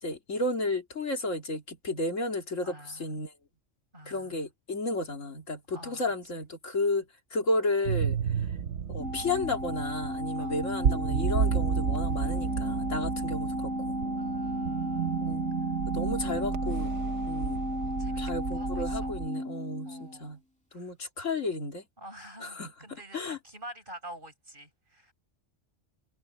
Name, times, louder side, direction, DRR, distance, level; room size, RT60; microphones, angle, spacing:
voice 1, 0.0-3.3 4.1-7.0 7.3-8.2 8.9-13.9 15.2-15.5 15.9-16.9 17.3-17.6 18.2-20.4 20.7-21.8 22.4-22.7 23.1-23.4, left 2 dB, 85° left, 2.8 m, -32 dB
voice 2, 2.6-3.1 3.9-4.5 5.7-6.0 10.4-10.6 13.0-13.1 14.2-15.4 17.8-19.2 19.8-20.4 20.7-20.9 22.0-25.1, right 1 dB, 45° right, 7.9 m, -48 dB
sound 1, 7.8-19.3, right 7 dB, 70° right, 1.2 m, -32 dB
Organ, 9.0-20.2, left 1 dB, 5° left, 2.1 m, -34 dB
omnidirectional pair, 1.3 m